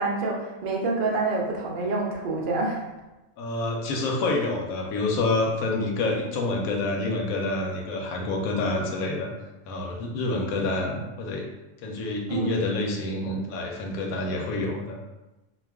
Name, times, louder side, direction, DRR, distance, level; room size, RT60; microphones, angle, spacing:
voice 1, 0.0-2.8 12.3-12.6, right 3 dB, 65° right, -1 dB, 0.5 m, -27 dB
voice 2, 3.4-9.3 9.7-11.4 11.8-15.0, left 2 dB, 85° left, 0 dB, 1.0 m, -27 dB
2.4 x 2.3 x 3.4 m, 1.0 s
omnidirectional pair, 1.4 m